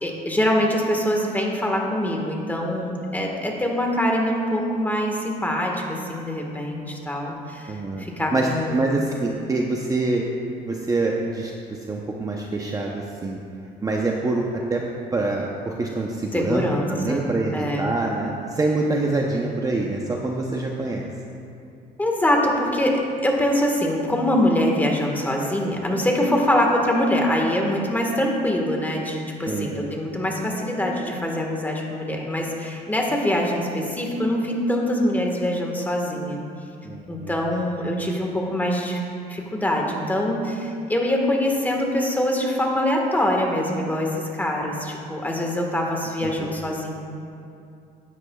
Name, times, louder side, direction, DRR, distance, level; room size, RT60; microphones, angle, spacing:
voice 1, 0.0-7.7 8.0-9.0 16.3-17.9 22.0-36.4 37.1-39.0 39.3-46.9, left 1 dB, 10° left, 0 dB, 1.5 m, -24 dB
voice 2, 7.7-8.0 8.3-10.2 10.7-11.5 11.9-13.4 13.8-14.8 15.1-21.1 29.5-29.7 36.8-37.4 46.2-46.5, right 2 dB, 20° right, -1 dB, 0.7 m, -25 dB
13.5 x 9.7 x 2.3 m, 2.5 s
cardioid pair, 110°, 17 cm